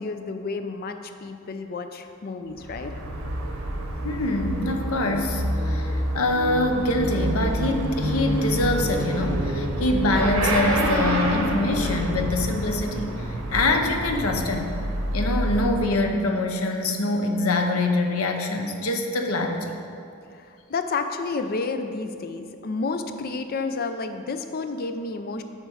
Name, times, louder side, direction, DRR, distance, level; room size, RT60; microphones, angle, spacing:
voice 1, 0.0-3.0 20.4-25.4, left 4 dB, 45° left, 8 dB, 0.4 m, -30 dB
Motorcycle / Accelerating revving vroom, 2.5-16.3, right 1 dB, 75° right, 1.2 m, -27 dB
voice 2, 4.0-14.7 15.1-19.8, left 2 dB, 75° left, 4 dB, 0.8 m, -24 dB
8.0 x 4.4 x 6.3 m, 2.5 s
head